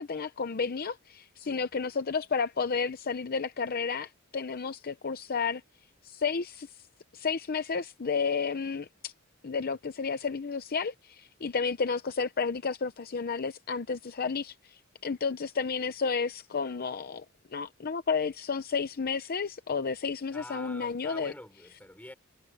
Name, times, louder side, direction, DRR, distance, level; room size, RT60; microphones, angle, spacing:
voice 1, 0.0-5.6 6.0-6.7 7.1-9.1 9.4-17.2 17.5-21.3, left 5 dB, 45° left, 0.6 m, -32 dB
voice 2, 20.3-22.1, left 1 dB, 10° left, 5.6 m, -47 dB
head